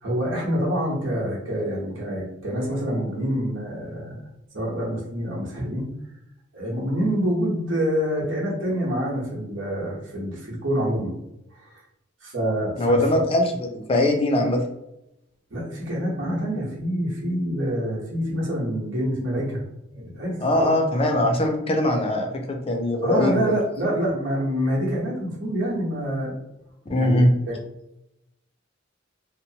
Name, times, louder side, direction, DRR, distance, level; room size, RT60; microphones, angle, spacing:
voice 1, 0.0-4.2 4.5-5.9 6.5-11.1 11.6-11.7 12.2-13.2 15.5-19.6 19.9-20.7 23.0-26.3 27.0-27.6, equal, 85° right, -4 dB, 1.1 m, -26 dB
voice 2, 12.8-14.6 20.4-23.6 26.9-27.3, left 1 dB, 30° left, 3 dB, 0.4 m, -21 dB
2.9 x 2.0 x 2.7 m, 0.86 s
head